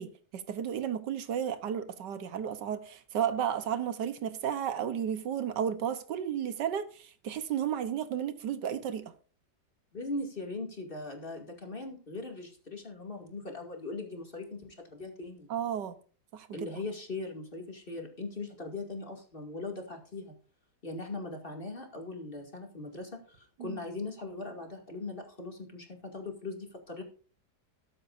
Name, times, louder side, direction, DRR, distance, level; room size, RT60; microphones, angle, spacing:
voice 1, 0.0-9.1 15.5-15.9 16.3-16.7 23.6-23.8, right 9 dB, 80° right, 1.6 m, -33 dB
voice 2, 9.9-15.5 16.5-20.3 20.8-27.0, left 2 dB, 30° left, 2.6 m, -40 dB
13.5 x 12.0 x 2.6 m
omnidirectional pair, 1.9 m